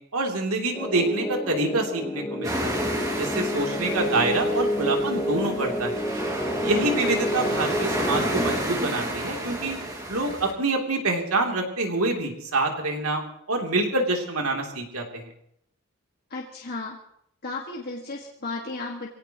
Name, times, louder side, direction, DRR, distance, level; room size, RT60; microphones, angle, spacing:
voice 1, 0.1-2.8 3.2-6.0 6.6-9.8 10.1-13.2 13.5-15.2, right 2 dB, 75° right, 1 dB, 3.2 m, -26 dB
sound 1, 0.7-8.6, equal, 10° left, 1.3 m, -29 dB
sound 2, 2.4-10.5, right 1 dB, 15° right, 2.3 m, -31 dB
voice 2, 6.7-7.1 16.3-17.0 17.4-19.1, left 3 dB, 45° left, -2 dB, 1.8 m, -34 dB
24.5 x 17.0 x 3.1 m, 0.72 s
head